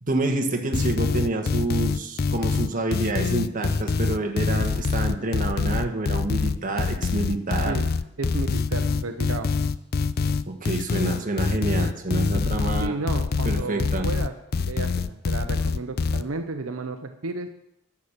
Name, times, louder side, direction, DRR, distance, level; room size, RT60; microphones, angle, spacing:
voice 1, 0.0-7.8 10.5-12.9 13.4-14.1, right 2 dB, 40° right, 3 dB, 1.4 m, -27 dB
sound 1, 0.7-16.2, left 4 dB, 45° left, 0.4 m, -25 dB
voice 2, 8.2-9.5 12.8-17.5, right 3 dB, 75° right, 7 dB, 0.8 m, -32 dB
11.0 x 7.3 x 6.6 m, 0.82 s
head